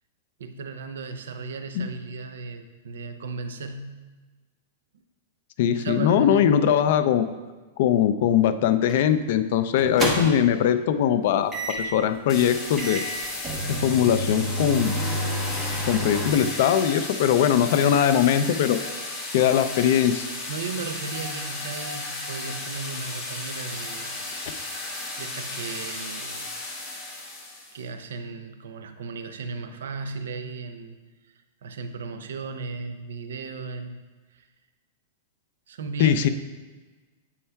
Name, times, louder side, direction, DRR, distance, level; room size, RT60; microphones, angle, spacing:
voice 1, 0.4-4.0 5.7-6.6 20.5-24.2 25.2-26.5 27.7-31.0 31.6-34.0 34.3-34.4 35.7-36.3, right 4 dB, 85° right, 9 dB, 0.5 m, -35 dB
voice 2, 5.6-7.3 7.8-13.0 13.7-14.9 15.9-18.8 19.3-20.3 36.0-36.3, left 9 dB, 55° left, 11 dB, 0.4 m, -21 dB
sound 1, 8.9-9.1 9.8-10.5 11.5-12.0 12.4-12.5 12.8-16.3, equal, 10° right, 0.9 m, -29 dB
sound 2, 12.3-27.8, left 2 dB, 25° left, 1.4 m, -34 dB
8.3 x 5.4 x 2.3 m, 1.3 s
supercardioid pair, 150°, 0 cm